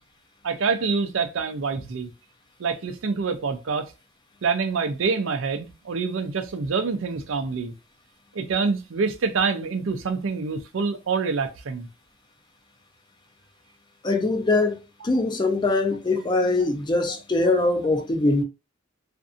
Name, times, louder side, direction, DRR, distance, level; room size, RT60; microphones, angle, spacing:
voice 1, 0.4-2.1 2.6-3.9 4.4-7.7 8.3-11.9, right 5 dB, 75° right, 0.5 m, -26 dB
voice 2, 14.0-14.8 15.0-18.4, left 2 dB, 25° left, 0.5 m, -22 dB
2.6 x 2.5 x 2.3 m
head